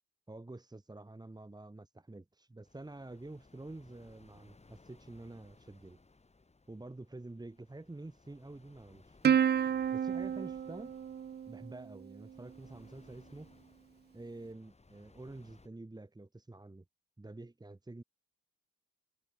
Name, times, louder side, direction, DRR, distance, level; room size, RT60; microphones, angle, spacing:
voice 1, 0.3-6.0 6.7-9.5 9.9-10.9 11.5-13.5 14.1-16.8 17.2-18.0, right 2 dB, 15° right, 2.9 m, -48 dB
sound 1, 2.6-15.7, left 3 dB, 20° left, 7.2 m, -63 dB
Plucked string instrument, 9.2-12.0, right 8 dB, 35° right, 0.5 m, -30 dB
cardioid pair, 90°, 30 cm